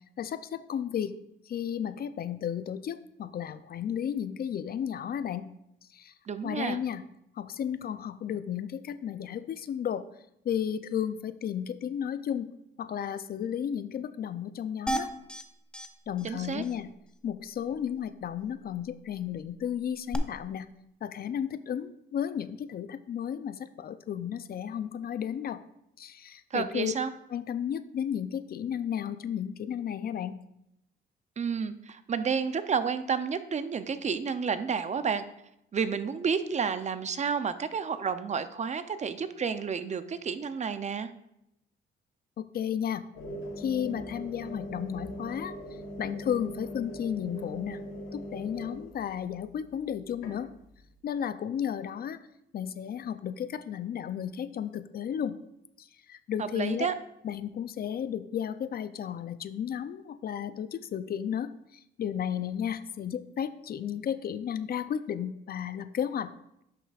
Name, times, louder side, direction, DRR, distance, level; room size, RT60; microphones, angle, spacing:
voice 1, 0.2-1.2 1.5-5.5 5.9-6.1 6.4-7.0 7.3-10.1 10.4-12.5 12.8-15.1 16.1-16.9 17.2-20.7 21.0-25.6 26.0-26.9 27.3-30.4 42.4-43.0 43.6-47.8 48.1-50.5 51.0-52.2 52.5-55.4 55.8-56.9 57.2-66.3, left 9 dB, 50° left, 13 dB, 0.5 m, -33 dB
voice 2, 6.3-6.8 16.2-16.6 26.5-27.1 31.4-35.2 35.7-41.1 56.4-56.9, right 6 dB, 35° right, 12 dB, 0.5 m, -30 dB
sound 1, 14.9-15.4 15.7-15.9 16.2-16.3 16.6-16.7 20.1-20.2, right 1 dB, 5° left, 0.6 m, -32 dB
sound 2, 43.1-51.0, equal, 90° left, 1.6 m, -41 dB
11.0 x 6.0 x 2.4 m, 0.81 s
cardioid pair, 90°, 20 cm